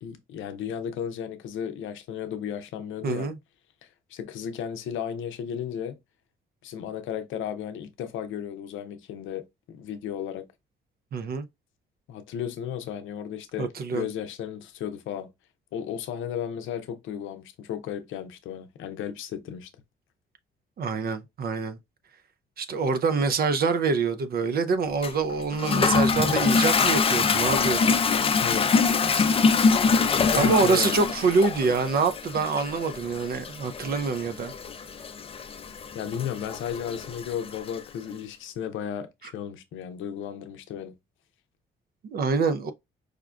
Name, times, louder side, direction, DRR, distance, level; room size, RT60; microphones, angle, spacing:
voice 1, 0.0-3.3 4.1-6.0 6.6-10.5 12.1-15.3 15.7-19.7 28.4-28.7 29.9-31.0 35.9-40.9, left 9 dB, 80° left, 0.6 m, -34 dB
voice 2, 3.0-3.4 11.1-11.5 13.6-14.1 20.8-21.8 22.6-28.0 30.3-34.5 39.2-39.3 42.0-42.7, right 4 dB, 50° right, 0.5 m, -25 dB
Toilet flush, 25.0-37.8, left 5 dB, 30° left, 0.4 m, -24 dB
4.9 x 2.2 x 2.4 m
cardioid pair, 90°, 20 cm